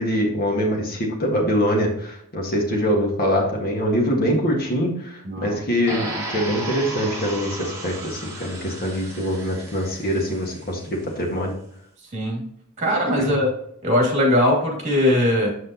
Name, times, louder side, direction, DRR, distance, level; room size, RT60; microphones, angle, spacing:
voice 1, 0.0-11.5 13.2-13.4, equal, 45° left, -1 dB, 1.6 m, -24 dB
voice 2, 5.2-5.6 12.1-12.4 12.8-13.5 13.8-15.5, left 1 dB, 30° right, 0 dB, 2.5 m, -20 dB
sound 1, 5.9-10.9, right 1 dB, 15° right, 2.1 m, -34 dB
7.7 x 5.9 x 2.9 m, 0.70 s
head